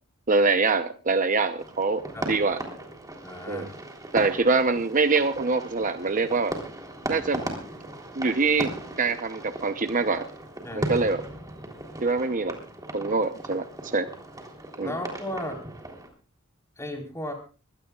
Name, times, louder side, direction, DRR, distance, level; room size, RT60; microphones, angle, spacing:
voice 1, 0.3-2.6 3.5-3.7 4.1-6.5 7.1-7.4 8.2-10.2 10.7-11.2 12.0-12.6 12.9-14.1 14.8-14.9, right 3 dB, 40° right, 9 dB, 0.8 m, -24 dB
sound 1, 1.6-16.1, right 1 dB, 15° right, 3.4 m, -37 dB
voice 2, 3.2-3.7 10.6-11.0 14.8-15.6 16.8-17.3, left 1 dB, 15° left, 2 dB, 4.2 m, -35 dB
24.5 x 17.0 x 2.4 m, 0.36 s
head